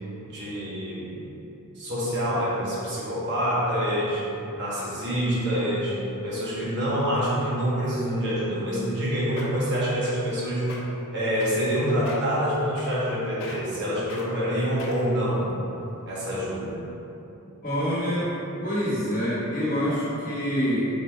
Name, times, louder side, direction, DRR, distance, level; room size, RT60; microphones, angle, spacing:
voice 1, 0.2-1.2 1.7-4.3 4.6-6.0 6.2-10.7 11.1-15.5 16.1-16.7, equal, 55° right, -8 dB, 1.1 m, -26 dB
sound 1, 9.0-9.1 9.4-9.7 10.0-10.3 10.6-10.8 11.4-11.8 12.1-12.3 12.8-13.1 13.4-13.8 14.1-14.3 14.8-15.2 15.8-15.9, left 3 dB, 60° left, 0.6 m, -40 dB
voice 2, 17.6-18.3 18.6-20.8, equal, 40° left, -9 dB, 1.3 m, -26 dB
3.9 x 2.6 x 4.5 m, 3.0 s
head